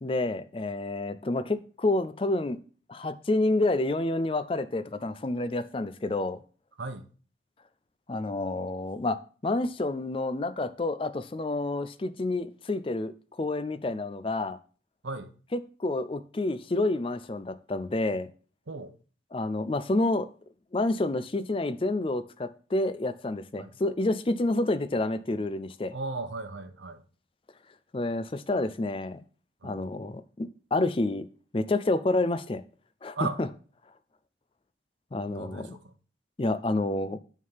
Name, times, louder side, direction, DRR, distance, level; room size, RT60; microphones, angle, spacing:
voice 1, 0.0-2.6 2.9-6.4 8.1-9.2 9.4-14.6 15.5-18.3 19.3-20.3 20.7-25.9 27.9-29.2 29.6-31.3 31.5-32.6 33.0-33.5 35.1-35.8 36.4-37.2, left 2 dB, 30° left, 0.4 m, -29 dB
voice 2, 25.9-27.0 29.6-29.8 33.1-33.4 35.2-35.9, right 3 dB, 85° right, 0.9 m, -36 dB
9.5 x 3.7 x 5.5 m
head